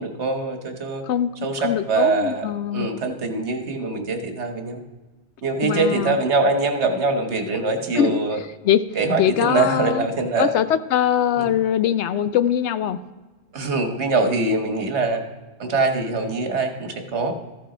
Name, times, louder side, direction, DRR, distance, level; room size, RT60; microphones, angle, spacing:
voice 1, 0.0-1.0 1.4-4.8 5.4-8.4 8.9-10.5 11.4-11.5 13.5-15.2 15.6-17.4, right 3 dB, 75° right, 5 dB, 1.5 m, -23 dB
voice 2, 1.6-2.9 5.6-6.2 7.9-8.2 8.6-8.8 9.2-10.1 10.4-13.0, left 10 dB, 75° left, 13 dB, 0.9 m, -21 dB
14.0 x 5.7 x 5.0 m, 1.2 s
omnidirectional pair, 1.2 m